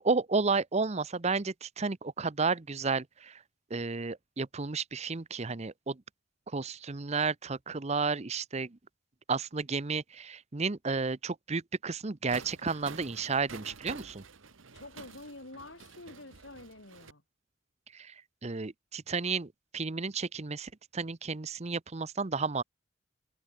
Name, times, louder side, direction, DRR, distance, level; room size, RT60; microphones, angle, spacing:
voice 1, 0.0-3.4 3.7-6.0 6.5-8.8 9.3-14.2 17.9-18.1 18.4-22.6, right 4 dB, 35° right, 0.8 m, -32 dB
sound 1, 12.3-17.1, right 4 dB, 80° right, 1.6 m, -49 dB
voice 2, 14.7-17.2, left 2 dB, 65° left, 4.2 m, -48 dB
head